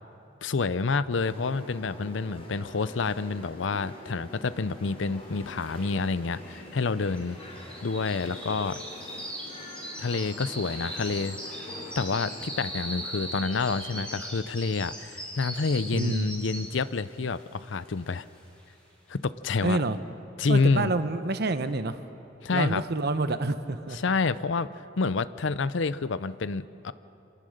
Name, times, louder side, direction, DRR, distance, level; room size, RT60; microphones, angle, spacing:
voice 1, 0.4-7.4 7.8-8.8 10.0-11.6 12.0-18.3 19.1-19.8 20.4-20.9 22.4-22.8 23.9-24.7 25.0-26.9, left 4 dB, 70° left, 15 dB, 0.6 m, -28 dB
sound 1, 1.1-14.1, left 2 dB, 30° left, 3.8 m, -45 dB
sound 2, 5.2-5.3 5.4-16.9 17.3-17.6 18.1-18.2, right 1 dB, 5° left, 6.1 m, -40 dB
voice 2, 15.9-16.3 19.6-20.0 20.5-22.0 22.5-24.0, right 2 dB, 55° right, 10 dB, 1.0 m, -28 dB
27.0 x 18.5 x 6.6 m, 2.9 s
head